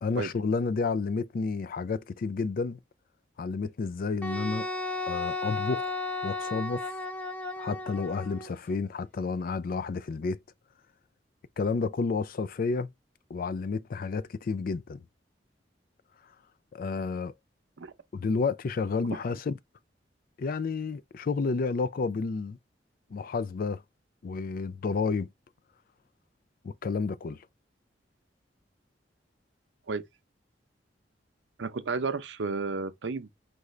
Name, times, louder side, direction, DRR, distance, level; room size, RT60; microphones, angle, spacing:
voice 1, 0.0-2.8 3.4-4.7 5.1-6.0 6.2-7.0 7.6-10.4 11.6-12.9 13.3-15.0 16.7-17.3 18.1-19.6 20.4-22.6 23.1-23.8 24.2-25.3 26.6-27.4, left 4 dB, 55° left, 0.4 m, -30 dB
Wind instrument woodwind instrument, 4.2-8.5, left 2 dB, 10° left, 0.6 m, -34 dB
voice 2, 31.6-33.3, right 4 dB, 80° right, 0.7 m, -32 dB
4.8 x 2.5 x 3.2 m
head